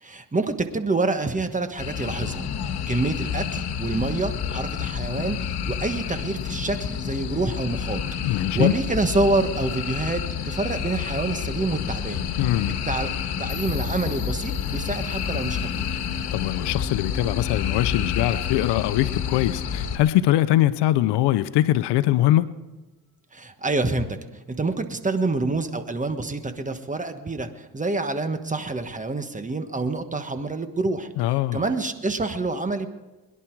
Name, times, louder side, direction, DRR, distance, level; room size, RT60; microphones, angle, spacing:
voice 1, 0.0-12.2 12.9-15.9 23.3-24.2 24.5-31.1 31.5-32.9, right 3 dB, 20° right, 1.3 m, -27 dB
sound 1, 1.8-20.0, left 8 dB, 70° left, 1.7 m, -29 dB
voice 2, 8.2-8.7 12.4-12.8 16.3-22.6 31.2-31.6, left 14 dB, 90° left, 0.7 m, -22 dB
sound 2, 13.5-16.5, left 4 dB, 40° left, 5.1 m, -45 dB
21.5 x 11.0 x 4.6 m
cardioid pair, 90°, 40 cm